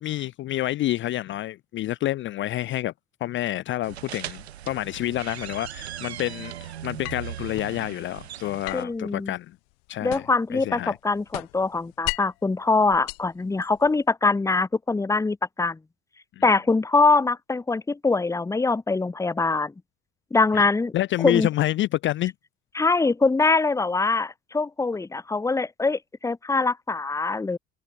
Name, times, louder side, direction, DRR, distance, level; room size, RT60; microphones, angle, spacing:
voice 1, 0.0-2.9 3.2-9.6 9.9-10.3 10.5-11.0 16.4-16.5 20.5-22.3, left 14 dB, 40° left, 0.6 m, -28 dB
sound 1, 3.8-8.8, right 11 dB, 80° right, 1.1 m, -38 dB
sound 2, 7.0-7.8 8.6-10.5 10.8-12.5 12.9-14.0, left 36 dB, 65° left, 2.2 m, -36 dB
voice 2, 8.7-9.3 10.0-15.8 16.4-19.7 20.3-20.9 21.2-21.5 22.7-27.6, left 3 dB, 10° left, 0.9 m, -23 dB
figure-of-eight pair, 65°, 32 cm